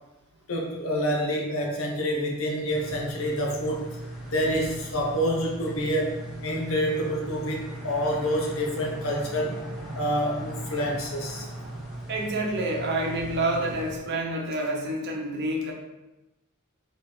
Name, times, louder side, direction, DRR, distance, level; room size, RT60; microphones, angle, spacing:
voice 1, 0.5-3.9 4.3-9.6 9.9-11.5, equal, 65° left, 0 dB, 0.8 m, -27 dB
sound 1, 2.7-14.0, right 1 dB, ahead, 1.0 m, -38 dB
voice 2, 12.1-15.7, right 1 dB, 55° right, 0 dB, 0.8 m, -28 dB
3.3 x 3.2 x 4.3 m, 1.0 s
head